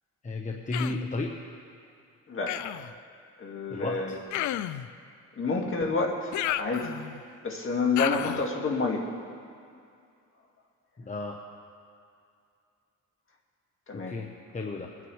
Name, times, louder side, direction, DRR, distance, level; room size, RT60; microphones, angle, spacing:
voice 1, 0.2-1.3 3.7-4.0 11.0-11.4 13.9-14.9, left 2 dB, 25° left, 1 dB, 1.0 m, -33 dB
Human voice, 0.7-1.1 2.5-2.9 4.3-4.9 6.3-7.2 8.0-8.5, left 13 dB, 75° left, 0.5 m, -32 dB
voice 2, 2.3-2.6 3.4-4.2 5.4-7.0 7.4-9.1 13.9-14.1, left 3 dB, 45° left, 0 dB, 2.0 m, -29 dB
23.0 x 9.3 x 3.2 m, 2.4 s
cardioid pair, 90°, 30 cm